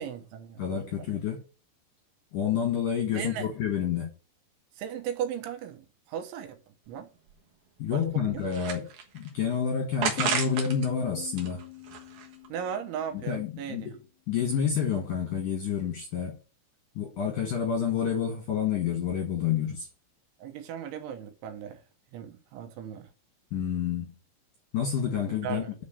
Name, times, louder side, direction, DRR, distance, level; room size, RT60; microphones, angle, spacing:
voice 1, 0.0-1.0 3.1-3.5 4.8-6.6 6.9-7.1 7.9-8.4 12.5-13.9 20.4-21.8 22.1-23.1 25.4-25.7, right 8 dB, 80° right, 3.2 m, -37 dB
voice 2, 0.6-1.4 2.3-4.1 7.8-8.8 9.1-11.6 13.2-14.0 14.3-16.3 17.0-19.9 23.5-24.1 24.7-25.6, left 8 dB, 65° left, 2.2 m, -29 dB
sound 1, 6.9-7.0 7.3-7.4 8.0-9.3 10.0-10.9 11.2-12.5, right 7 dB, 60° right, 2.3 m, -32 dB
Piano, 10.2-13.6, left 24 dB, 85° left, 3.0 m, -41 dB
9.7 x 4.3 x 6.8 m
omnidirectional pair, 5.7 m